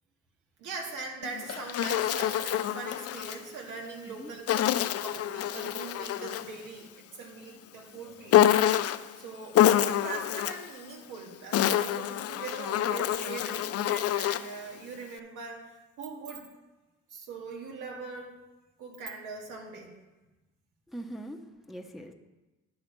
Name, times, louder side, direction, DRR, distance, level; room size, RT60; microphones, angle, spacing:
voice 1, 0.6-8.5 9.2-16.5 17.1-18.4 18.8-20.0, right 4 dB, 90° right, 1 dB, 1.9 m, -41 dB
Insect, 1.2-3.4 4.5-6.6 8.3-9.1 9.5-10.7 11.3-14.6, left 11 dB, 55° left, 0.4 m, -26 dB
voice 2, 20.9-22.1, right 1 dB, ahead, 2 dB, 0.8 m, -42 dB
10.5 x 6.3 x 4.6 m, 1.1 s
cardioid pair, 90°, 30 cm